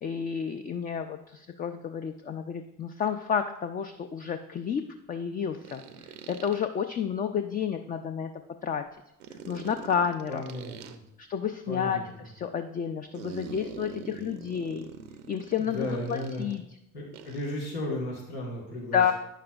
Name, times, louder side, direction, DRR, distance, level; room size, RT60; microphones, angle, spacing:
voice 1, 0.0-5.8 6.3-8.3 8.6-8.8 9.5-10.4 11.2-14.9 15.3-16.6 18.9-19.1, left 7 dB, 25° left, 8 dB, 0.3 m, -30 dB
sound 1, 3.0-3.1 5.6-6.7 9.2-10.9 13.1-16.6 17.1-17.5, right 6 dB, 85° right, 0.6 m, -43 dB
voice 2, 10.3-11.0 11.7-12.0 15.7-16.5 16.9-19.1, left 1 dB, 80° left, -3 dB, 1.6 m, -34 dB
8.9 x 6.5 x 2.3 m, 0.82 s
figure-of-eight pair, 50°, 43 cm